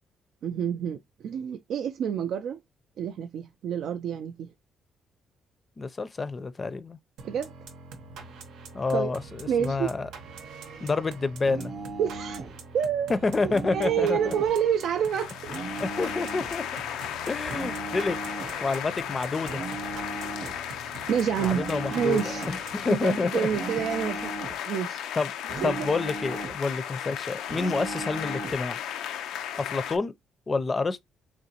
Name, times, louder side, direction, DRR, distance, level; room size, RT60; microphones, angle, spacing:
voice 1, 0.4-2.6 3.0-4.5 7.2-7.5 8.9-9.1 9.5-9.9 12.0-12.5 12.7-13.1 13.4-15.3 21.1-22.5 22.9-24.3 24.7-25.0 25.6-25.9, right 8 dB, 75° right, 0.3 m, -28 dB
voice 2, 5.8-7.0 8.7-10.1 10.8-11.7 13.1-14.3 15.8-16.6 17.3-18.2 18.6-19.6 21.4-22.2 22.5-23.5 23.8-23.9 25.1-25.3 25.6-28.8 29.5-30.1 30.5-31.0, left 3 dB, 30° left, 0.5 m, -28 dB
sound 1, 7.2-23.5, right 4 dB, 90° right, 0.8 m, -45 dB
sound 2, 11.4-12.6 13.4-14.6 15.5-16.6 17.5-18.6 19.5-20.6 21.5-22.6 23.5-24.6 25.5-26.6 27.5-28.6, right 3 dB, 60° right, 0.7 m, -37 dB
sound 3, 14.8-30.0, left 10 dB, 90° left, 0.4 m, -35 dB
3.8 x 3.0 x 2.8 m
cardioid pair, 90°, 0 cm